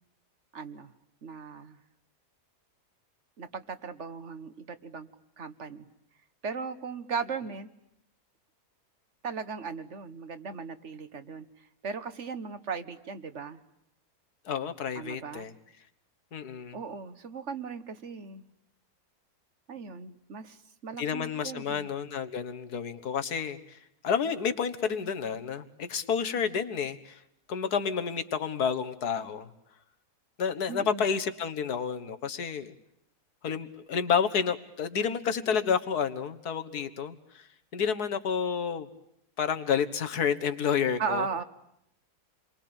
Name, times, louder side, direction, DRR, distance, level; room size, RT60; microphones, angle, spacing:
voice 1, 0.5-0.9 1.2-1.8 3.4-5.1 5.4-5.9 6.4-7.7 9.2-11.4 11.8-13.6 14.9-15.5 16.7-18.4 19.7-20.6 20.8-21.9 30.7-31.1 41.0-41.4, right 5 dB, 50° right, 12 dB, 1.6 m, -37 dB
voice 2, 14.5-15.5 16.3-16.8 21.0-23.8 24.0-27.2 27.5-29.5 30.4-32.7 33.4-37.5 37.7-38.9 39.4-41.3, left 7 dB, 75° left, 11 dB, 2.0 m, -30 dB
29.0 x 23.5 x 8.9 m, 0.75 s
omnidirectional pair, 1.7 m